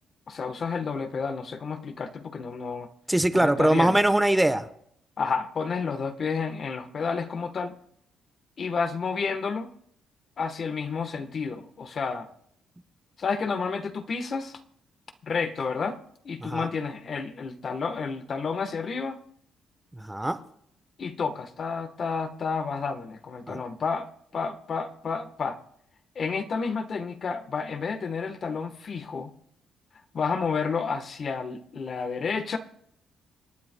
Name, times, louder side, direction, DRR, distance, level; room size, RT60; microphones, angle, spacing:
voice 1, 0.3-2.9 3.3-4.0 5.2-7.7 8.6-9.7 10.4-12.3 13.2-14.6 15.2-16.0 16.2-19.2 21.0-24.1 24.3-25.6 26.1-29.3 30.1-32.6, left 5 dB, 50° left, 8 dB, 1.1 m, -30 dB
voice 2, 3.1-4.7 16.4-16.7 19.9-20.4 23.5-23.6, right 1 dB, 10° right, 10 dB, 0.9 m, -22 dB
27.0 x 9.4 x 2.2 m, 0.68 s
cardioid pair, 90°, 0 cm